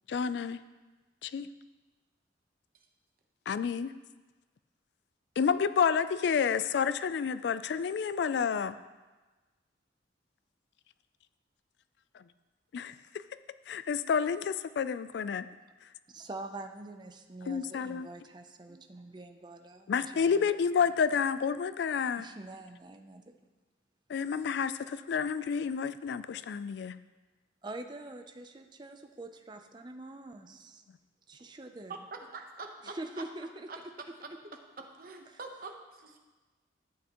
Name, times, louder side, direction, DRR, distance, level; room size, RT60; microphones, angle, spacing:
voice 1, 0.1-0.6 1.2-1.5 3.5-3.9 5.4-8.7 12.1-12.2 12.7-13.2 13.7-15.5 17.5-18.1 19.9-22.3 24.1-27.0, left 6 dB, 65° left, 14 dB, 0.3 m, -30 dB
voice 2, 16.1-20.5 22.2-23.4 27.6-30.8 31.3-31.9 32.8-33.7 35.3-35.4, right 2 dB, 25° right, 6 dB, 0.5 m, -45 dB
voice 3, 31.9-33.2 33.7-33.8 35.0-36.2, right 3 dB, 50° right, 3 dB, 0.9 m, -44 dB
12.0 x 8.4 x 3.0 m, 1.2 s
head